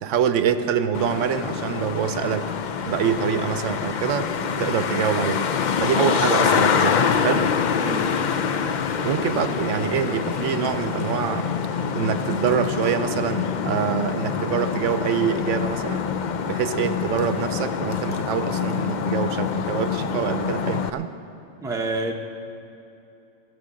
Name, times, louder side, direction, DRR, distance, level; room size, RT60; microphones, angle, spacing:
voice 1, 0.0-2.5 2.9-5.5 5.8-7.5 9.0-16.0 16.5-21.1, right 8 dB, 75° right, 10 dB, 0.9 m, -25 dB
Traffic noise roadway noise, 0.9-20.9, left 6 dB, 55° left, 0.5 m, -25 dB
voice 2, 7.8-8.2 21.6-22.1, right 2 dB, 5° right, 1 dB, 0.8 m, -28 dB
18.0 x 6.8 x 7.6 m, 2.8 s
omnidirectional pair, 1.3 m